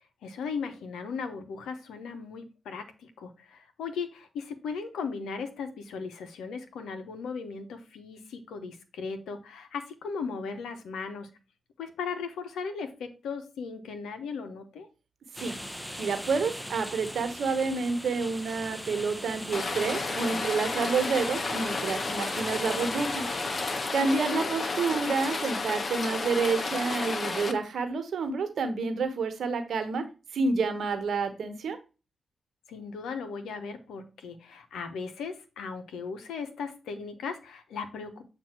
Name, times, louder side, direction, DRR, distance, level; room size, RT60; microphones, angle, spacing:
voice 1, 0.2-11.3 11.8-14.9 24.0-24.5 32.7-38.2, left 5 dB, 85° left, 8 dB, 0.9 m, -37 dB
sound 1, 15.4-23.9, equal, 5° left, 0.7 m, -40 dB
voice 2, 16.0-23.2 23.9-30.0 30.3-31.8, right 4 dB, 75° right, 8 dB, 1.1 m, -29 dB
Rain, 19.5-27.5, left 3 dB, 50° left, 0.9 m, -32 dB
7.5 x 2.6 x 5.9 m, 0.31 s
supercardioid pair, 40°, 0 cm